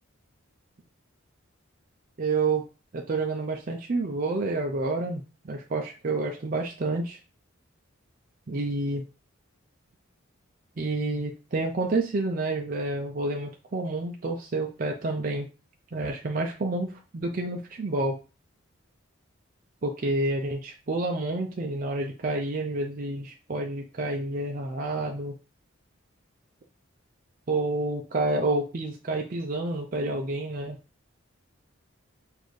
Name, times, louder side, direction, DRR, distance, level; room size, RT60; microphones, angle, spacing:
voice 1, 2.2-2.6 2.9-7.2 8.5-9.0 10.8-15.5 15.9-18.2 19.8-25.3 27.5-30.8, right 2 dB, 40° right, 1 dB, 0.4 m, -29 dB
4.1 x 2.6 x 3.1 m, 0.32 s
head